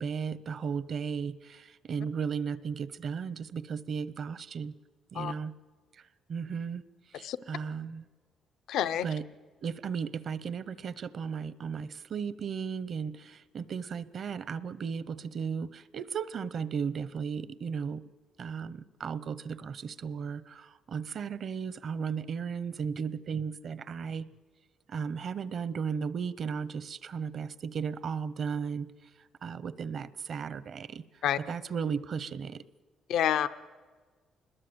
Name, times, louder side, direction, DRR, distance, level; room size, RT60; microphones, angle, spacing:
voice 1, 0.0-4.7 5.1-5.5 5.9-6.8 7.1-8.0 9.0-9.2 9.6-18.0 18.4-24.3 24.9-28.9 29.2-32.6, right 6 dB, 55° right, 17 dB, 0.8 m, -35 dB
voice 2, 8.7-9.1 31.2-31.4 33.1-33.5, left 10 dB, 80° left, 12 dB, 0.7 m, -27 dB
26.0 x 21.0 x 8.0 m, 1.4 s
cardioid pair, 90°, 0 cm